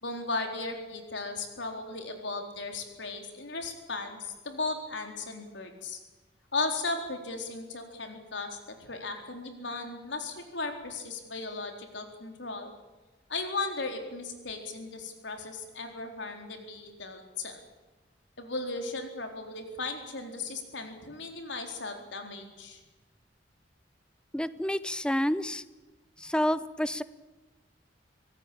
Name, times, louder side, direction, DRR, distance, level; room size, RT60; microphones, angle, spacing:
voice 1, 0.0-6.0 6.5-12.7 13.3-17.6 18.4-22.8, left 3 dB, 85° left, 4 dB, 4.2 m, -36 dB
voice 2, 24.3-25.6 26.2-27.0, equal, 5° left, 15 dB, 0.8 m, -29 dB
25.5 x 17.0 x 8.8 m, 1.2 s
head